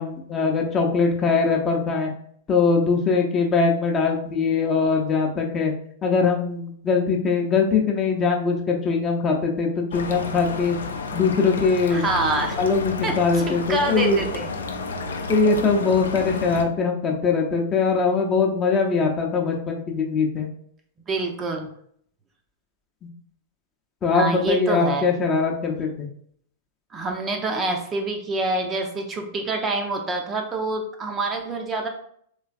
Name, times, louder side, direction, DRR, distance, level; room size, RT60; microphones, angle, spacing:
voice 1, 0.0-2.1 2.5-5.7 6.0-10.8 11.1-12.1 12.6-14.2 15.3-20.5 24.0-26.1, left 4 dB, 25° left, 1 dB, 0.6 m, -22 dB
sound 1, 9.9-16.6, left 4 dB, 70° left, 0.4 m, -31 dB
voice 2, 11.9-12.6 13.0-14.5 21.1-21.7 24.1-25.0 26.9-31.9, right 2 dB, 20° right, 3 dB, 0.5 m, -26 dB
3.2 x 3.2 x 2.4 m, 0.65 s
figure-of-eight pair, 100°, 0 cm